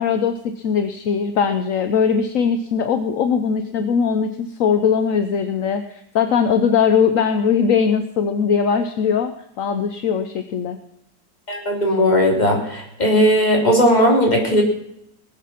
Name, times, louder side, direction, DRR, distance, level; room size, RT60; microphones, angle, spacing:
voice 1, 0.0-10.8, left 6 dB, 55° left, 9 dB, 1.0 m, -20 dB
voice 2, 11.5-14.6, equal, 20° left, 0 dB, 3.3 m, -17 dB
19.0 x 8.4 x 5.9 m, 0.75 s
omnidirectional pair, 2.0 m